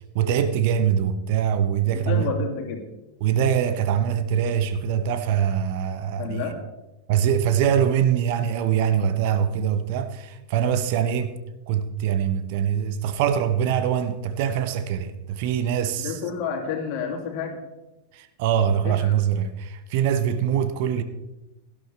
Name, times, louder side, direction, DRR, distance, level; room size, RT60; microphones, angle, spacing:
voice 1, 0.1-2.3 3.2-6.5 7.1-11.3 11.7-16.2 18.1-21.0, right 8 dB, 50° right, 1.0 m, -23 dB
voice 2, 1.9-2.8 6.2-6.6 16.0-17.6 18.8-19.2, left 6 dB, 45° left, 2.7 m, -30 dB
17.5 x 12.5 x 3.5 m
figure-of-eight pair, 90°, 0 cm